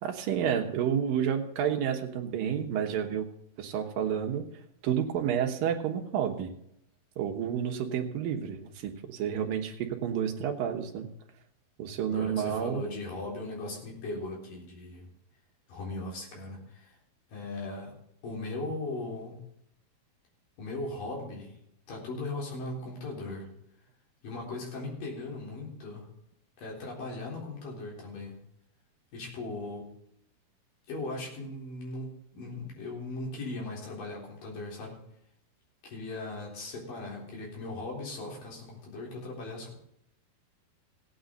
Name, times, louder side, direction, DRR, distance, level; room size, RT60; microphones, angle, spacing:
voice 1, 0.0-3.3 3.6-4.5 4.8-6.5 7.2-11.1 11.8-12.8, right 8 dB, 70° right, 3 dB, 3.0 m, -30 dB
voice 2, 12.1-15.1 15.7-17.0 17.3-18.0 18.2-19.4 20.6-21.6 21.9-23.5 24.2-26.1 26.6-28.4 29.1-29.9 30.9-35.0 35.8-39.7, left 2 dB, 60° left, -2 dB, 5.4 m, -38 dB
16.5 x 9.5 x 4.0 m, 0.75 s
omnidirectional pair, 4.5 m